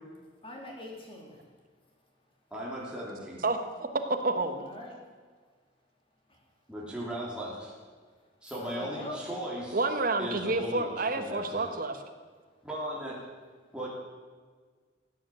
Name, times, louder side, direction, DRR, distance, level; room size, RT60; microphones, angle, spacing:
voice 1, 0.4-1.4 4.6-4.9 8.6-9.2, left 1 dB, 30° left, 0 dB, 3.2 m, -42 dB
voice 2, 2.5-3.4 6.7-7.7 8.4-9.8 10.2-10.9 11.1-11.7 12.6-13.2 13.7-13.9, right 1 dB, 5° right, -6 dB, 3.2 m, -37 dB
voice 3, 3.4-3.9 4.2-4.6 9.7-12.0, right 3 dB, 50° right, 7 dB, 1.4 m, -29 dB
15.5 x 9.3 x 7.7 m, 1.5 s
head